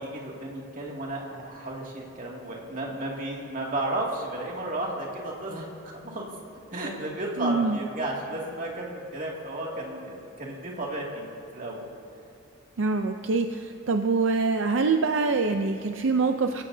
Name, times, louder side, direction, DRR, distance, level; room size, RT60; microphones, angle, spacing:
voice 1, 0.0-6.3 6.7-11.3 11.5-11.9, right 1 dB, 40° right, -2 dB, 2.3 m, -33 dB
voice 2, 7.4-7.8 12.8-16.6, right 4 dB, 70° right, 6 dB, 0.5 m, -25 dB
24.5 x 15.5 x 2.7 m, 2.7 s
head